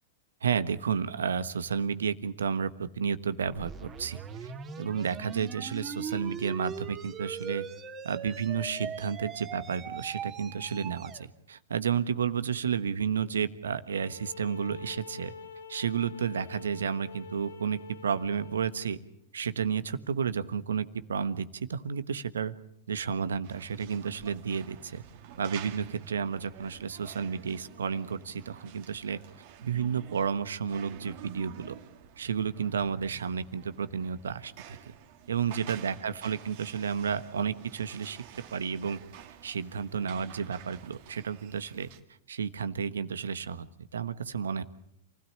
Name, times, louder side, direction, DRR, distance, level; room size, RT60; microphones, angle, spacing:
voice 1, 0.4-4.5 4.8-7.7 8.0-15.3 15.7-19.0 19.3-22.5 22.9-25.0 25.4-29.2 29.6-31.7 32.2-34.8 35.3-38.2 38.5-39.0 39.4-41.9 42.3-43.6 43.9-44.6, right 7 dB, 80° right, 13 dB, 1.3 m, -31 dB
buildup square wahwah, 3.5-11.2, right 6 dB, 25° right, 2.9 m, -40 dB
sound 1, 13.9-18.9, left 5 dB, 90° left, 2.4 m, -46 dB
sound 2, 23.4-42.0, right 10 dB, 55° right, 2.4 m, -50 dB
28.0 x 16.5 x 8.7 m, 0.76 s
hypercardioid pair, 110°, 0 cm